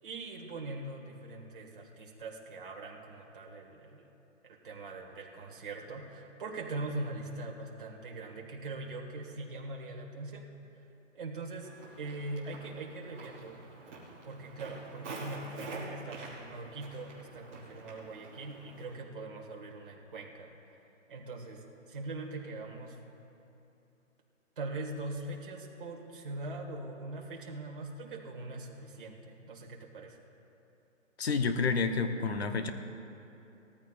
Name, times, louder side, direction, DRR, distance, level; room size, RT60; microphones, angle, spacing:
voice 1, 0.0-4.1 4.4-10.5 11.1-11.7 12.0-13.6 14.2-20.5 21.1-23.0 24.6-30.2, right 2 dB, 40° right, -1 dB, 1.7 m, -42 dB
Walk footsteps, 11.6-19.0, right 3 dB, 10° right, 1.2 m, -47 dB
voice 2, 31.2-32.7, left 4 dB, 55° left, 7 dB, 0.9 m, -29 dB
18.5 x 14.0 x 2.4 m, 2.8 s
hypercardioid pair, 175°, 39 cm